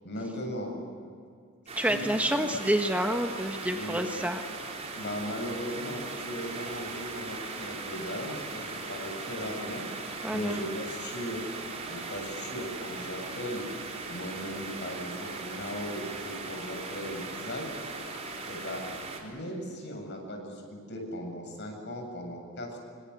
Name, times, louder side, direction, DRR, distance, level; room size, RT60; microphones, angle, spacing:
voice 1, 0.0-0.8 1.9-2.4 3.7-4.0 4.9-9.9 10.3-11.5 11.8-13.7 14.1-17.7 18.5-18.8 19.2-22.8, equal, 55° left, 3 dB, 7.9 m, -38 dB
voice 2, 1.7-4.4 10.2-10.6, right 1 dB, 5° right, 4 dB, 1.3 m, -28 dB
sound 1, 1.7-19.2, right 3 dB, 30° right, 4.3 m, -39 dB
28.0 x 25.5 x 8.4 m, 2.2 s
head